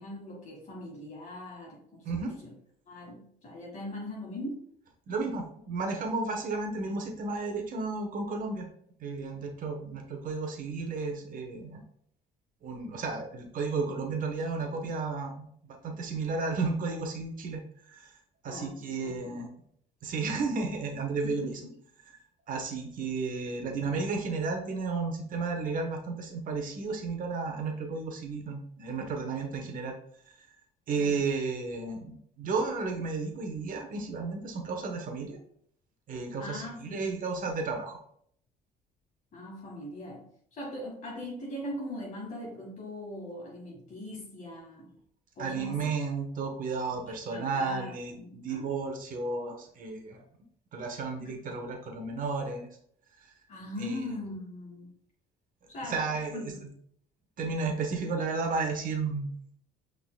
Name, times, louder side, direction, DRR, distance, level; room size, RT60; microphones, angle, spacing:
voice 1, 0.0-2.0 2.4-2.5 2.9-4.6 18.4-18.7 19.0-19.4 21.2-21.8 31.0-31.2 36.4-37.2 39.3-40.2 40.5-44.9 45.4-45.9 47.3-48.7 50.1-50.2 53.5-54.9 55.7-56.6, left 1 dB, 50° left, -4 dB, 1.7 m, -40 dB
voice 2, 5.1-8.7 9.0-11.8 12.6-18.1 18.4-19.5 20.0-21.7 22.1-22.2 22.5-29.9 30.3-30.4 30.9-35.4 36.1-38.0 45.4-50.2 50.7-52.7 53.2-53.3 53.8-54.1 55.8-56.7 57.4-59.3, right 4 dB, 55° right, 3 dB, 1.2 m, -33 dB
5.8 x 3.9 x 2.3 m, 0.65 s
cardioid pair, 110°, 17 cm